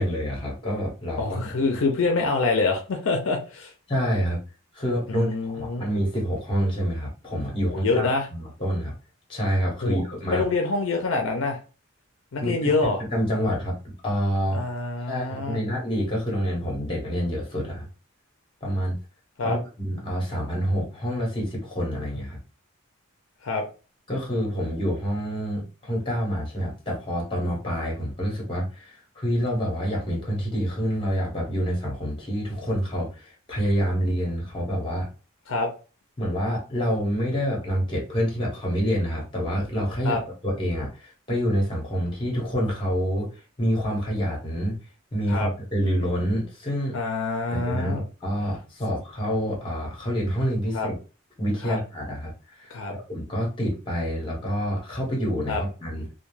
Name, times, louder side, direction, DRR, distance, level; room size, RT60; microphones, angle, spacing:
voice 1, 0.0-1.5 3.9-4.4 4.7-8.9 9.3-10.5 12.4-12.5 13.0-14.6 15.1-17.9 18.6-19.0 19.4-22.4 24.1-35.1 36.2-40.2 40.4-43.3 43.6-44.8 45.1-47.0 47.5-50.9 51.4-52.3 52.6-56.1, equal, 25° left, -1 dB, 1.0 m, -27 dB
voice 2, 1.2-3.7 5.1-5.9 7.6-8.3 9.8-11.6 12.3-13.0 14.5-15.6 19.4-19.6 23.4-23.6 35.5-35.7 40.0-40.2 45.3-45.5 46.9-48.0 50.7-50.9 51.6-51.8 52.7-52.9 55.5-55.6, left 3 dB, 65° left, 3 dB, 0.5 m, -26 dB
2.2 x 2.2 x 3.1 m, 0.34 s
head